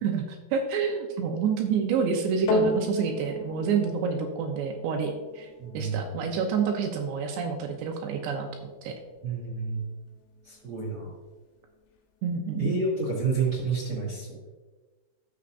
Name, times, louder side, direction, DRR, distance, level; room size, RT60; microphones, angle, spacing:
voice 1, 0.0-8.9 12.2-12.7, right 6 dB, 80° right, 3 dB, 2.6 m, -28 dB
sound 1, 2.5-11.0 11.8-11.9, left 1 dB, 65° left, 3.0 m, -35 dB
voice 2, 5.6-6.1 9.2-9.8 10.4-11.1 12.6-14.4, right 4 dB, 40° right, -5 dB, 2.1 m, -29 dB
13.5 x 7.2 x 2.5 m, 1.3 s
omnidirectional pair, 5.9 m